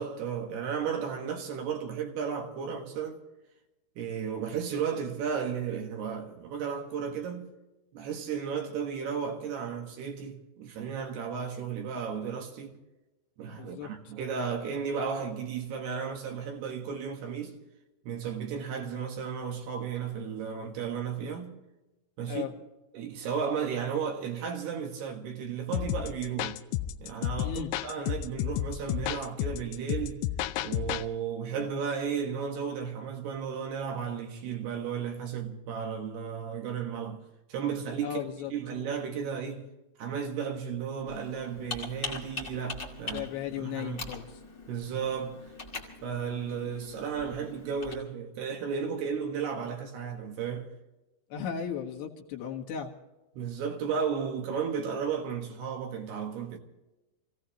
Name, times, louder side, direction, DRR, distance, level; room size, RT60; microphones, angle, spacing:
voice 1, 0.0-3.2 4.0-7.5 7.9-12.8 13.4-17.6 18.1-21.6 22.2-22.5 22.9-26.6 27.0-30.2 30.6-37.2 37.5-38.2 38.5-39.7 40.0-43.2 43.6-44.1 44.7-45.5 46.0-50.7 53.4-56.6, right 7 dB, 65° right, 3.3 m, -34 dB
voice 2, 13.6-13.9 22.3-22.5 27.4-27.7 38.0-38.5 43.1-44.3 51.3-52.9, left 8 dB, 65° left, 3.5 m, -35 dB
sound 1, 25.7-31.1, left 13 dB, 85° left, 2.4 m, -32 dB
Computer keyboard, 41.1-47.9, left 3 dB, 40° left, 1.0 m, -42 dB
27.5 x 16.5 x 3.0 m
omnidirectional pair, 5.5 m